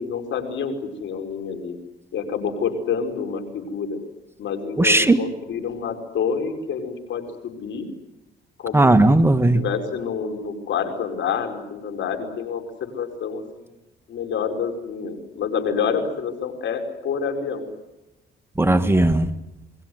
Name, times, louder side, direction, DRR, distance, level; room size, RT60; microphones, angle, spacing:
voice 1, 0.0-1.8 2.1-4.0 4.4-7.9 8.6-8.9 9.5-13.8 14.1-17.7, left 6 dB, 70° left, 6 dB, 5.3 m, -28 dB
voice 2, 4.8-5.2 8.7-9.6 18.6-19.3, right 2 dB, 10° right, 9 dB, 1.7 m, -16 dB
28.5 x 21.5 x 8.0 m, 0.96 s
cardioid pair, 90°, 20 cm